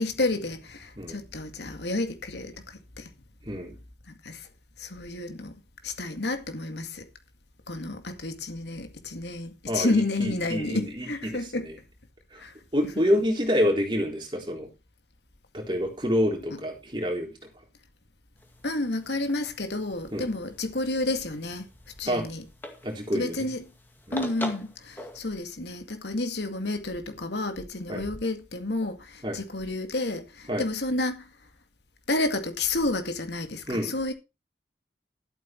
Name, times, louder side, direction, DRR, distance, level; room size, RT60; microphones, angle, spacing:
voice 1, 0.0-3.1 4.2-4.5 4.8-5.5 5.8-7.0 7.7-11.7 12.4-12.5 18.6-21.7 22.0-22.4 23.1-23.6 24.1-31.2 32.1-34.1, left 2 dB, 80° left, 2.1 m, -30 dB
voice 2, 9.7-11.8 12.3-12.4 12.7-14.7 15.5-17.3 20.1-20.3 22.1-22.3 22.8-23.5 24.1-24.2 27.9-28.0 29.2-29.4 30.5-30.7 33.7-33.9, equal, 25° right, 3.8 m, -27 dB
sound 1, 18.4-25.2, left 1 dB, 10° left, 2.1 m, -43 dB
13.5 x 8.4 x 4.5 m
head